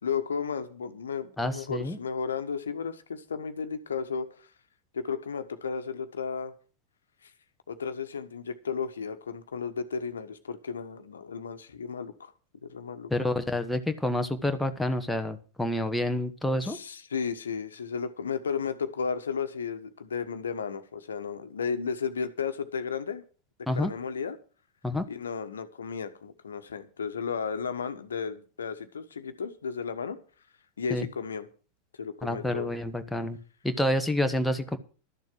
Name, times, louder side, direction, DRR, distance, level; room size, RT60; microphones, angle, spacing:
voice 1, 0.0-4.5 4.9-6.5 7.2-7.3 7.7-12.3 12.6-13.1 16.6-23.2 23.7-24.4 25.1-30.2 30.8-31.5 32.0-32.7, left 6 dB, 70° left, 10 dB, 1.3 m, -34 dB
voice 2, 1.4-2.0 13.1-16.8 23.7-23.9 24.8-25.1 30.9-31.1 32.2-33.4 33.6-34.8, left 1 dB, 5° left, 6 dB, 1.3 m, -28 dB
12.5 x 7.4 x 7.7 m, 0.37 s
figure-of-eight pair, 90°, 0 cm